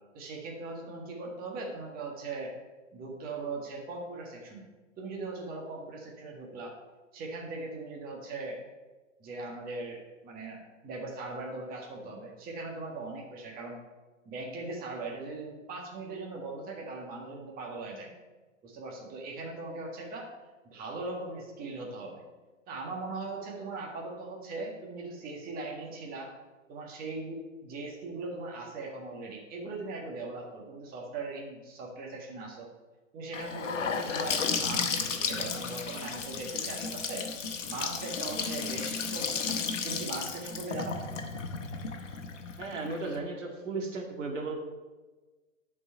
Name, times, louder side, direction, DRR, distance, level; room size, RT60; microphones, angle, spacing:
voice 1, 0.1-2.5 2.9-4.7 5.0-6.7 7.1-8.6 9.2-13.8 14.3-18.1 18.6-20.3 20.7-22.2 22.7-26.3 26.7-32.7 33.1-37.3 37.7-39.5 39.8-41.0, right 3 dB, 20° right, -1 dB, 1.7 m, -39 dB
Gurgling / Sink (filling or washing) / Bathtub (filling or washing), 33.3-43.2, left 5 dB, 65° left, 1.2 m, -33 dB
voice 2, 42.6-44.6, right 3 dB, 65° right, 2 dB, 2.0 m, -35 dB
10.5 x 4.8 x 5.7 m, 1.3 s
figure-of-eight pair, 120°, 39 cm